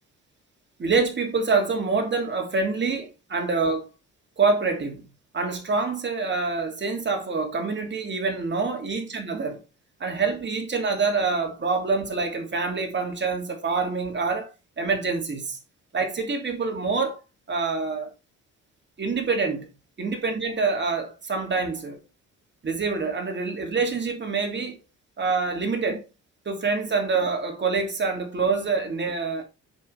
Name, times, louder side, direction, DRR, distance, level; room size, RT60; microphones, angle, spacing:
voice 1, 0.8-3.9 4.4-5.1 5.3-9.6 10.0-14.5 14.8-15.6 15.9-17.2 17.5-18.1 19.0-19.7 20.0-22.0 22.6-24.8 25.2-26.0 26.4-29.4, right 4 dB, 35° right, 3.0 m, -26 dB
8.3 x 6.2 x 3.5 m
cardioid pair, 90°, 30 cm